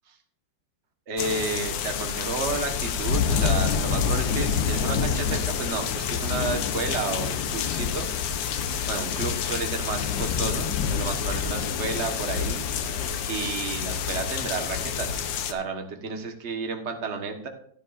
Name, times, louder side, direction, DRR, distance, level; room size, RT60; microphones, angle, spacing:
voice 1, 1.1-8.3 8.9-13.0 13.3-17.5, right 4 dB, 40° right, 4 dB, 1.5 m, -32 dB
sound 1, 1.2-15.5, left 7 dB, 85° left, 1.5 m, -27 dB
15.0 x 9.7 x 2.5 m, 0.62 s
omnidirectional pair, 2.0 m